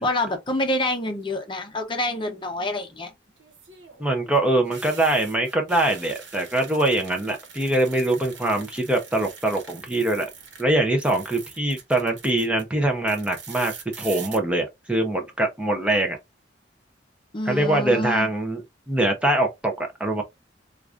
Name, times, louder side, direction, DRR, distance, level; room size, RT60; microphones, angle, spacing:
voice 1, 0.0-3.1 17.3-18.3, left 1 dB, 25° left, 0.7 m, -27 dB
sound 1, 1.0-1.5 3.4-10.6 10.9-12.6 13.1-14.4, right 6 dB, 75° right, 1.1 m, -43 dB
voice 2, 4.0-10.3 10.6-16.2 17.5-20.2, right 1 dB, 5° right, 0.6 m, -23 dB
4.7 x 2.4 x 2.4 m
head